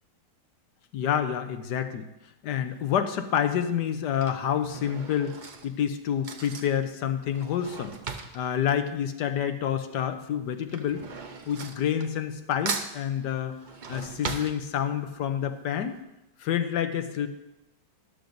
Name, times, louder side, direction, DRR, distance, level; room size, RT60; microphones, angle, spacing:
voice 1, 0.9-2.1 2.4-5.3 5.6-7.9 8.3-11.0 11.5-13.6 13.9-16.0 16.4-17.3, left 9 dB, 75° left, 8 dB, 1.3 m, -28 dB
Drawer open or close / Cutlery silverware, 2.7-3.0 3.9-9.8 10.0-12.4 12.7-15.2 15.6-15.7 15.9-16.0, right 4 dB, 50° right, 0.5 m, -39 dB
13.0 x 12.0 x 2.6 m, 0.93 s
omnidirectional pair, 1.9 m